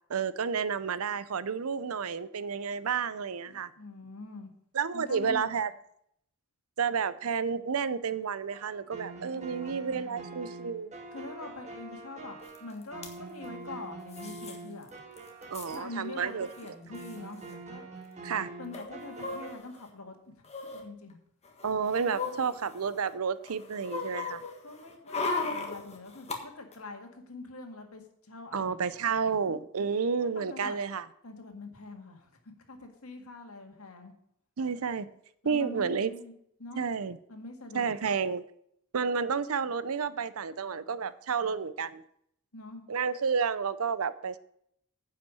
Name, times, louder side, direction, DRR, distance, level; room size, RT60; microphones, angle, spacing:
voice 1, 0.1-3.7 4.7-5.7 6.8-10.9 15.5-16.5 18.2-18.5 21.6-24.4 28.5-31.1 34.6-35.1 35.4-36.1 36.8-37.2 37.7-38.4 38.9-42.0 42.9-44.4, right 6 dB, 80° right, 16 dB, 0.6 m, -31 dB
voice 2, 3.5-4.5 4.9-5.6 9.4-9.8 10.0-10.2 11.1-15.0 15.7-17.9 18.6-21.2 22.0-22.5 24.6-28.8 30.2-30.8 31.2-32.3 32.7-34.1 35.4-36.3 36.6-36.9 37.3-37.9 42.5-42.8, left 2 dB, 80° left, 4 dB, 1.9 m, -44 dB
sound 1, 8.5-19.6, right 3 dB, 30° right, 1.9 m, -45 dB
sound 2, 12.5-12.6 12.8-13.1 14.1-14.6 14.9-15.0 15.2-15.8 16.6-16.7 16.9-17.1 18.7-19.9 20.4-20.8 21.4-23.1 23.5-26.4 26.7-26.8, left 4 dB, 30° left, 1.6 m, -37 dB
10.0 x 5.8 x 7.7 m, 0.72 s
head